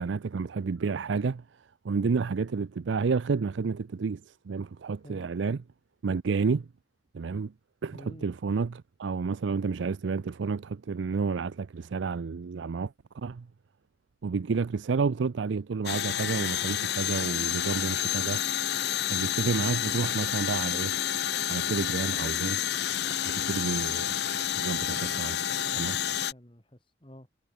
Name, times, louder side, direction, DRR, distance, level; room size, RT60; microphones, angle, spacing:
voice 1, 0.0-1.4 1.8-5.6 6.0-6.6 7.1-7.5 7.8-13.5 14.2-18.4 19.1-21.0 21.5-22.6 23.2-24.2 24.6-25.4 25.8-26.0, right 5 dB, 80° right, 0.5 m, -30 dB
voice 2, 7.9-8.3 25.4-26.0 26.3-27.3, equal, 30° left, 3.1 m, -49 dB
sound 1, 15.9-26.3, left 10 dB, 60° left, 0.7 m, -29 dB
head